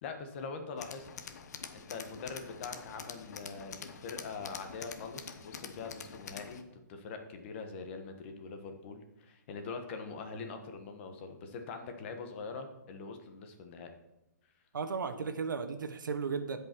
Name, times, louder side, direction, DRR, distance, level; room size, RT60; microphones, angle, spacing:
voice 1, 0.0-1.1 1.7-13.9, left 4 dB, 40° left, 6 dB, 1.3 m, -43 dB
Tools, 0.8-6.6, left 6 dB, 60° left, 1.0 m, -46 dB
voice 2, 14.7-16.6, right 5 dB, 85° right, 9 dB, 1.2 m, -35 dB
15.0 x 5.4 x 4.6 m, 0.92 s
hypercardioid pair, 155°, 10 cm